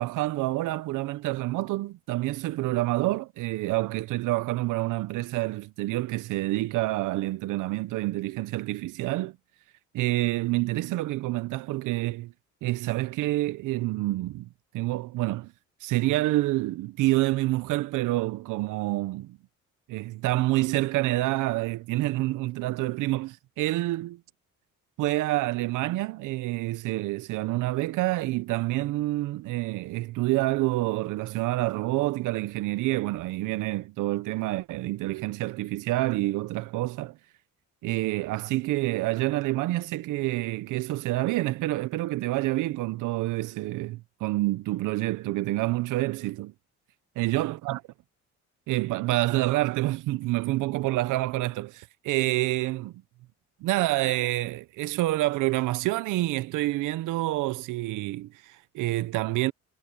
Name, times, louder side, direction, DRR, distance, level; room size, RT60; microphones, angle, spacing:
voice 1, 0.0-9.4 9.9-12.3 12.6-15.5 15.8-19.4 19.9-24.2 25.0-37.2 37.8-46.5 47.2-47.8 48.7-52.9 53.6-59.5, right 18 dB, 90° right, 0.6 m, -28 dB
cardioid pair, 90°, 30 cm